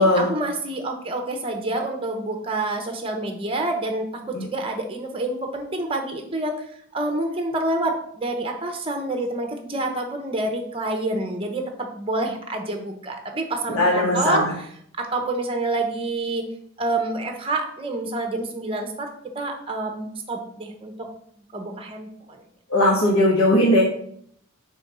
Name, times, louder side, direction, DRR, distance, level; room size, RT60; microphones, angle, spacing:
voice 1, 0.0-6.6 6.9-14.7 15.0-16.4 16.8-19.1 19.3-21.1 21.4-22.1, right 2 dB, 25° right, 4 dB, 0.8 m, -27 dB
voice 2, 13.7-14.5 22.7-23.8, left 1 dB, 80° left, -2 dB, 1.3 m, -18 dB
4.4 x 4.4 x 5.4 m, 0.66 s
head